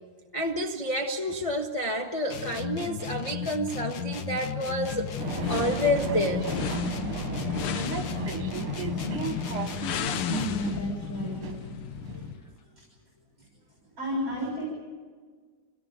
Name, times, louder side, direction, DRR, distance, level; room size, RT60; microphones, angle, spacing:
voice 1, 0.3-5.1 5.5-6.5, equal, 20° left, 3 dB, 1.1 m, -29 dB
sound 1, 2.3-10.8, left 7 dB, 55° left, 1.5 m, -35 dB
sound 2, 4.9-12.5, left 10 dB, 80° left, 1.8 m, -35 dB
sound 3, 5.2-12.6, right 7 dB, 75° right, 2.2 m, -36 dB
voice 2, 9.7-11.4 14.0-14.6, equal, 35° right, -2 dB, 6.8 m, -32 dB
26.5 x 18.0 x 9.3 m, 1.5 s
omnidirectional pair, 2.4 m